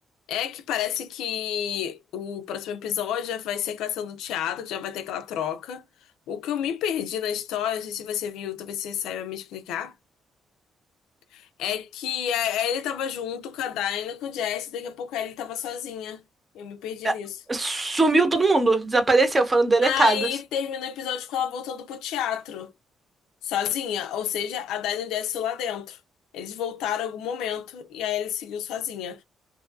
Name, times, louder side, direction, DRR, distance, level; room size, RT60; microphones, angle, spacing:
voice 1, 0.3-5.8 6.3-9.9 11.3-16.2 16.5-17.4 19.8-22.7 23.4-26.0 26.3-29.2, left 9 dB, 90° left, 0.4 m, -30 dB
voice 2, 17.5-20.3, right 2 dB, 25° right, 0.8 m, -20 dB
2.6 x 2.5 x 2.3 m
cardioid pair, 90°, 0 cm